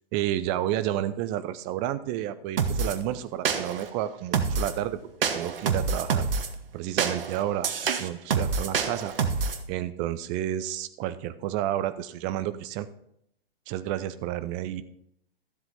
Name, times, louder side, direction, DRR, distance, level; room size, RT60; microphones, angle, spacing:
voice 1, 0.1-5.0 5.3-6.3 6.7-9.1 9.7-12.9 13.7-14.8, right 12 dB, 20° right, 13 dB, 0.5 m, -30 dB
sound 1, 2.6-3.0 3.5-3.9 4.3-4.8 5.2-6.5 7.0-9.6, right 5 dB, 60° right, 1.2 m, -27 dB
13.0 x 7.6 x 4.2 m, 0.75 s
figure-of-eight pair, 110°, 31 cm